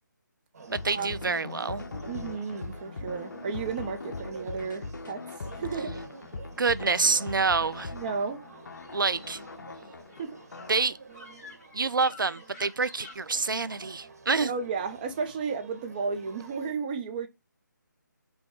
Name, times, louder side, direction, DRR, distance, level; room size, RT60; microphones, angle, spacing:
sound 1, 0.5-16.7, right 4 dB, 50° right, 1.2 m, -49 dB
sound 2, 0.7-10.8, left 3 dB, 75° left, 0.5 m, -40 dB
voice 1, 0.7-1.8 6.6-7.9 8.9-9.4 10.7-11.0 11.7-14.5, right 4 dB, 85° right, 0.4 m, -27 dB
sound 3, 1.9-2.8 5.6-7.2 7.7-8.4 8.7-13.1, left 3 dB, 10° left, 1.1 m, -52 dB
voice 2, 2.1-5.2 5.5-5.9 7.9-8.4 10.2-10.4 14.4-17.3, right 5 dB, 25° right, 0.7 m, -33 dB
5.2 x 2.3 x 4.4 m
figure-of-eight pair, 155°, 11 cm